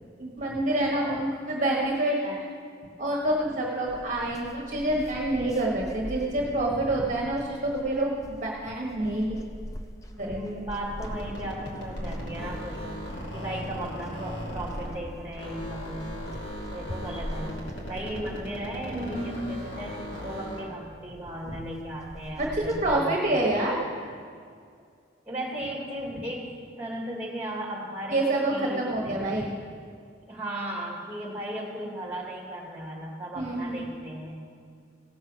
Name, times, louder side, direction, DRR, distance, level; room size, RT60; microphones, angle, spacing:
voice 1, 0.2-2.4 3.0-8.1 8.4-9.4 10.2-10.7 18.9-19.6 22.4-23.8 28.1-29.5 33.3-33.9, right 1 dB, 40° right, -3 dB, 1.4 m, -27 dB
sound 1, 3.9-23.0, equal, 15° left, 0.5 m, -42 dB
voice 2, 10.2-13.0 13.3-16.1 16.7-23.2 25.3-28.2 28.5-29.2 30.3-34.4, right 1 dB, 10° right, -3 dB, 2.5 m, -36 dB
sound 2, 10.9-15.1 15.4-20.8, equal, 60° left, 2.5 m, -38 dB
16.5 x 6.5 x 6.2 m, 2.2 s
head